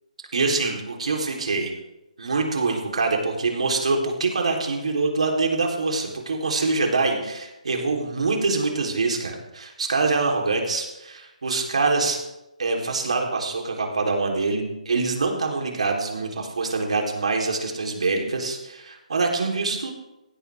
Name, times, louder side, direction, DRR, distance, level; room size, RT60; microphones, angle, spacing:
voice 1, 0.3-1.7 2.2-12.2 12.6-19.9, right 3 dB, 55° right, 1 dB, 3.6 m, -25 dB
17.0 x 16.0 x 3.5 m, 0.94 s
hypercardioid pair, 180°, 4 cm